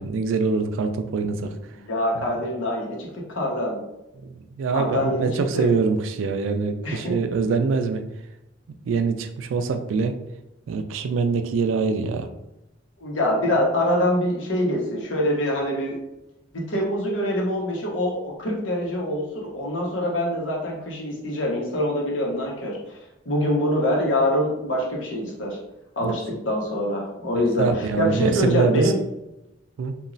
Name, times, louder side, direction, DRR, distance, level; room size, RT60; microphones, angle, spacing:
voice 1, 0.0-1.5 4.2-8.0 8.9-10.1 10.7-12.3 26.0-26.1 27.6-28.9 29.8-29.9, right 4 dB, 85° right, 7 dB, 0.3 m, -24 dB
voice 2, 1.7-3.8 4.7-5.7 6.8-7.2 13.0-16.0 16.5-23.0 23.2-25.6 26.0-29.0, left 1 dB, 85° left, -2 dB, 0.9 m, -25 dB
3.0 x 2.3 x 2.5 m, 0.91 s
head